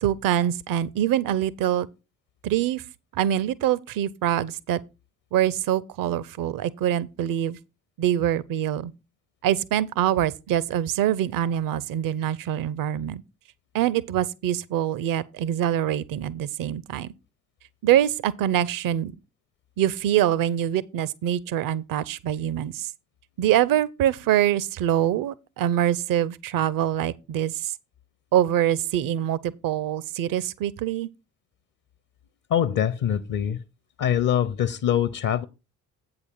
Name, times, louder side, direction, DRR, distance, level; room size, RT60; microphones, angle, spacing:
voice 1, 0.0-1.9 2.4-2.8 3.1-4.8 5.3-7.6 8.0-8.9 9.4-13.2 13.7-17.1 17.8-19.1 19.8-22.9 23.4-27.7 28.3-31.1, right 11 dB, 50° right, 0.6 m, -24 dB
voice 2, 32.5-33.6 34.0-35.4, left 9 dB, 45° left, 0.7 m, -23 dB
8.3 x 4.8 x 5.5 m
figure-of-eight pair, 45°, 44 cm